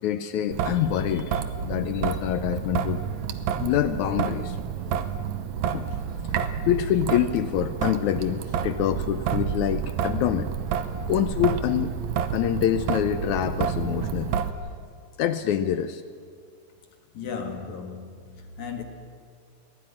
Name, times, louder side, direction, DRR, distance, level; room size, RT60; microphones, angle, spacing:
voice 1, 0.0-3.1 3.6-4.6 5.7-6.4 6.7-10.5 11.1-12.0 12.3-14.4 15.2-16.0, left 11 dB, 75° left, 1.8 m, -26 dB
Traffic noise roadway noise / Drip / Trickle dribble, 0.5-14.5, right 7 dB, 70° right, 1.9 m, -29 dB
voice 2, 17.1-18.8, left 6 dB, 60° left, 2.8 m, -35 dB
22.0 x 16.5 x 9.8 m
omnidirectional pair, 4.0 m